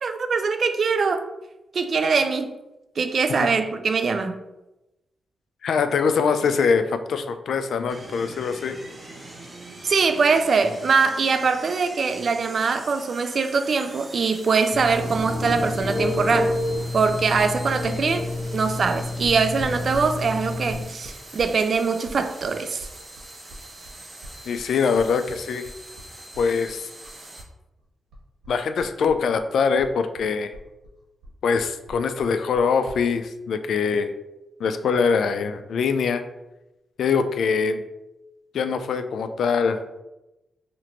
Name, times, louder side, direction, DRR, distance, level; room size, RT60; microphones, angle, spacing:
voice 1, 0.0-1.2 1.7-2.5 3.0-4.4 9.8-16.6 16.9-22.9, right 5 dB, 60° right, 8 dB, 0.4 m, -22 dB
voice 2, 5.6-8.8 24.5-25.7 26.4-26.8 28.5-30.5 31.4-34.1 34.6-36.2 37.0-37.8 38.5-39.8, left 5 dB, 80° left, 9 dB, 0.3 m, -23 dB
sound 1, 7.9-27.4, right 1 dB, 35° right, 0.9 m, -43 dB
Telephone, 14.7-20.8, left 2 dB, 30° left, 0.8 m, -29 dB
sound 2, 19.2-27.5 27.8-29.5 29.8-33.0, equal, 85° right, 1.0 m, -43 dB
2.9 x 2.5 x 4.3 m, 0.98 s
cardioid pair, 70°, 0 cm